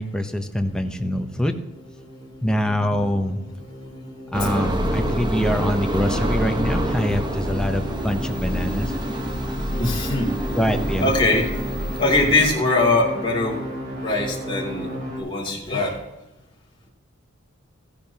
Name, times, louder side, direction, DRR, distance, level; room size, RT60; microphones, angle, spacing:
voice 1, 0.0-1.6 2.4-3.4 4.3-8.9 10.6-11.1, equal, 5° left, 5 dB, 0.8 m, -24 dB
sound 1, 0.6-15.2, equal, 55° right, 3.6 m, -35 dB
sound 2, 4.3-12.5, equal, 20° right, 1.0 m, -26 dB
voice 2, 9.8-10.3 11.0-11.5 12.0-13.6 14.0-14.9 15.2-16.0, left 2 dB, 25° left, -3 dB, 2.8 m, -21 dB
15.0 x 10.0 x 2.9 m, 0.98 s
head